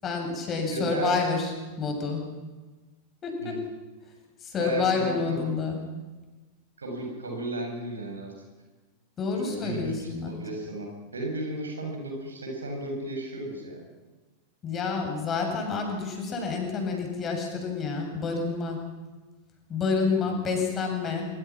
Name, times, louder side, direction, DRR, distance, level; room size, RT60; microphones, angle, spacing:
voice 1, 0.0-1.5 1.8-2.2 3.2-3.6 4.4-5.8 9.2-10.4 14.6-18.8 19.7-21.3, left 4 dB, 25° left, 2 dB, 7.7 m, -28 dB
voice 2, 0.7-1.1 3.4-3.6 4.6-5.5 6.8-8.3 9.3-13.9 20.0-20.4, right 2 dB, 75° right, 1 dB, 7.7 m, -34 dB
25.5 x 25.0 x 6.2 m, 1.3 s
figure-of-eight pair, 90°, 0 cm